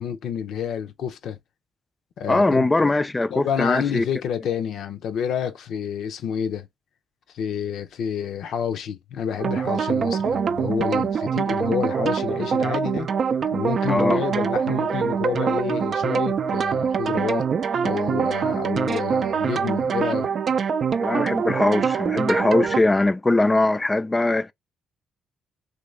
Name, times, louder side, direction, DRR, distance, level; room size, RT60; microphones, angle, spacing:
voice 1, 0.0-1.4 2.2-2.7 3.3-6.7 7.3-13.1 13.5-17.5 17.8-20.3, left 8 dB, 75° left, 0.6 m, -28 dB
voice 2, 2.3-4.1 13.9-14.2 21.0-24.5, left 2 dB, 20° left, 0.3 m, -21 dB
sound 1, 9.4-22.8, right 6 dB, 50° right, 0.4 m, -24 dB
3.1 x 2.5 x 3.2 m
cardioid pair, 90°, 0 cm